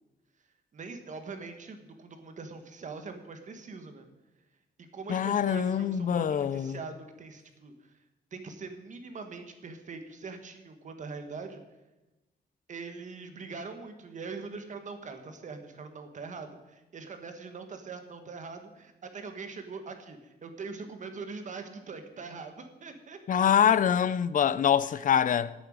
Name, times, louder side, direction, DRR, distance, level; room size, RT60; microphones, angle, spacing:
voice 1, 0.7-4.1 4.9-7.7 8.3-11.6 12.7-23.4 24.8-25.0, right 4 dB, 45° right, 1.6 m, -42 dB
voice 2, 5.1-6.8 23.3-25.5, left 8 dB, 50° left, 0.5 m, -25 dB
11.0 x 8.2 x 8.8 m
wide cardioid pair, 155°, 17 cm